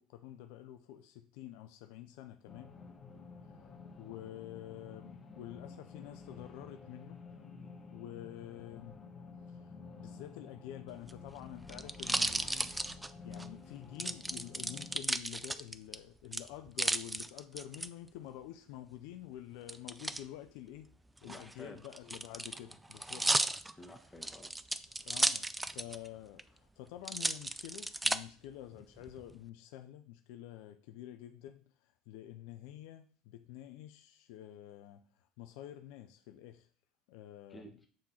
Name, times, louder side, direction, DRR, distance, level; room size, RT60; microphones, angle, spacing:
voice 1, 0.0-2.7 3.4-3.6 4.0-7.3 7.9-9.0 9.5-20.9 21.2-23.3 23.6-23.8 25.0-36.7 37.1-37.7, left 12 dB, 65° left, 0.4 m, -49 dB
sound 1, 2.5-15.0, left 4 dB, 30° left, 1.3 m, -51 dB
sound 2, 10.9-13.5 14.0-16.0 16.3-17.9 19.7-20.2 21.2-26.1 26.4-26.5 27.0-28.2 28.8-29.3, right 2 dB, 10° right, 0.4 m, -34 dB
voice 2, 21.2-21.8 23.3-24.5 37.5-37.8, left 1 dB, 10° left, 1.6 m, -52 dB
7.7 x 3.7 x 4.2 m
hypercardioid pair, 70°, 0 cm